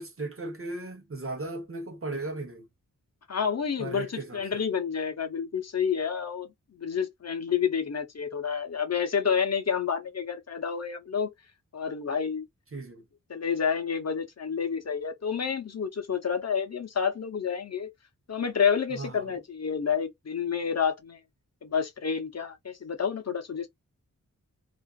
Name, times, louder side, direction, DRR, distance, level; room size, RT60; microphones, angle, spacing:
voice 1, 0.0-2.7 3.8-4.6 12.7-13.0 18.9-19.4, right 2 dB, 40° right, 0.9 m, -37 dB
voice 2, 3.3-6.5 6.8-11.3 11.7-12.4 13.3-17.9 18.3-21.2 21.6-23.7, left 6 dB, 50° left, 0.7 m, -29 dB
2.4 x 2.4 x 2.3 m
cardioid pair, 45°, 35 cm